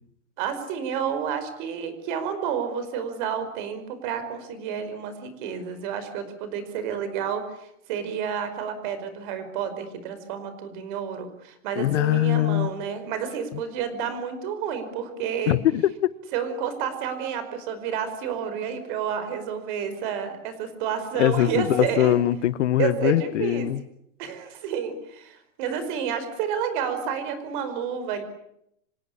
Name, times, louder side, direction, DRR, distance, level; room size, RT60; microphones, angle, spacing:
voice 1, 0.4-15.6 16.3-22.2 22.8-23.7 24.2-28.2, right 7 dB, 40° right, 5.2 m, -30 dB
voice 2, 11.8-12.7 15.5-16.1 21.1-23.8, left 13 dB, 65° left, 1.2 m, -22 dB
26.5 x 18.0 x 9.9 m
supercardioid pair, 170°, 38 cm